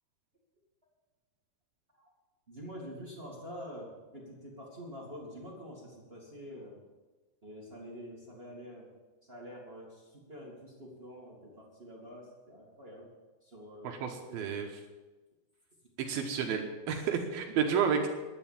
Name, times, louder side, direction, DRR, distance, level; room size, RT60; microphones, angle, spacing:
voice 1, 2.5-3.9 4.1-6.8 7.4-8.8 9.2-13.1 13.4-14.0 14.3-14.4 17.6-17.8, equal, 25° right, -3 dB, 1.3 m, -46 dB
voice 2, 13.8-14.7 16.0-18.1, right 7 dB, 70° right, 3 dB, 2.6 m, -31 dB
10.5 x 10.5 x 7.4 m, 1.2 s
omnidirectional pair, 5.1 m